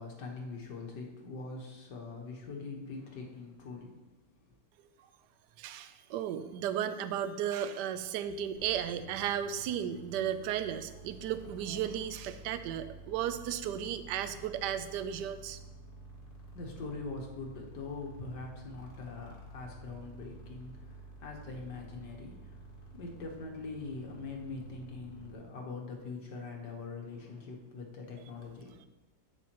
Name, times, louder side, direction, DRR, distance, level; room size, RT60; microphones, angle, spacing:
voice 1, 0.0-4.0 16.5-22.6 22.9-28.9, left 3 dB, 65° left, 0 dB, 1.8 m, -43 dB
voice 2, 5.6-15.6, right 9 dB, 75° right, 11 dB, 1.2 m, -35 dB
sound 1, 8.6-25.3, right 2 dB, 30° left, 1.7 m, -51 dB
11.0 x 8.5 x 3.0 m, 1.1 s
omnidirectional pair, 2.0 m